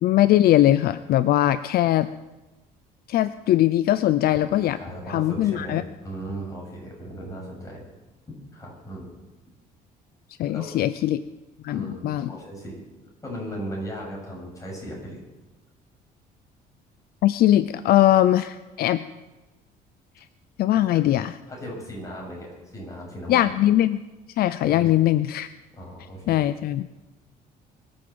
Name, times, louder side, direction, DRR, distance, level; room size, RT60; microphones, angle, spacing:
voice 1, 0.0-2.1 3.1-4.8 5.1-5.8 10.4-11.2 11.6-12.3 17.2-19.1 20.6-21.3 23.3-24.0 24.4-25.5 26.3-26.9, left 13 dB, 65° left, 14 dB, 0.6 m, -20 dB
voice 2, 4.3-7.9 8.3-9.1 10.5-10.7 11.7-12.8 13.2-15.2 20.9-21.0 21.5-23.5 24.7-25.1 25.7-26.4, right 1 dB, 20° left, -2 dB, 7.5 m, -37 dB
23.0 x 7.9 x 8.0 m, 1.1 s
cardioid pair, 110°, 17 cm